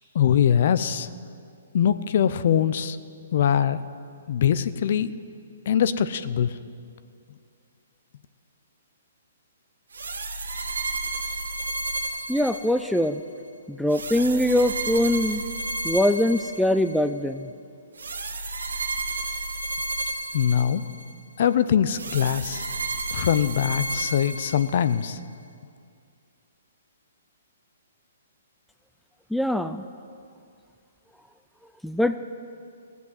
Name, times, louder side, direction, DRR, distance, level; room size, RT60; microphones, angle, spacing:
voice 1, 0.1-1.1 1.7-3.0 3.3-3.8 4.3-5.1 5.7-6.5 20.3-20.8 21.4-22.7 23.1-25.2, left 9 dB, 55° left, 14 dB, 0.6 m, -22 dB
sound 1, 9.9-13.1 13.9-17.0 18.0-21.1 21.9-25.0, right 2 dB, 80° right, 1.3 m, -32 dB
voice 2, 12.3-13.2 13.7-15.4 15.8-17.5 29.3-29.8 31.8-32.2, left 1 dB, ahead, 9 dB, 0.4 m, -22 dB
16.0 x 8.1 x 8.0 m, 2.3 s
hypercardioid pair, 130°, 0 cm